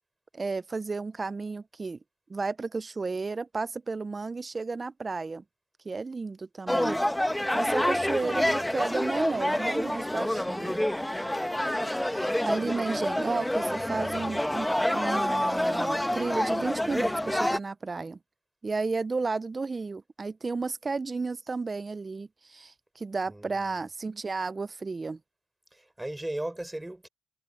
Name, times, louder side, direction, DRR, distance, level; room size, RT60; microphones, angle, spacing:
voice 1, 0.3-2.0 2.3-5.4 5.8-7.0 7.5-10.8 11.9-18.2 18.6-25.2, right 4 dB, 35° right, 0.7 m, -33 dB
sound 1, 6.7-17.6, left 1 dB, 10° left, 1.2 m, -28 dB
voice 2, 7.7-8.4 13.7-14.4 23.3-23.6 25.7-27.1, right 1 dB, 15° right, 6.1 m, -38 dB
supercardioid pair, 55°, 0 cm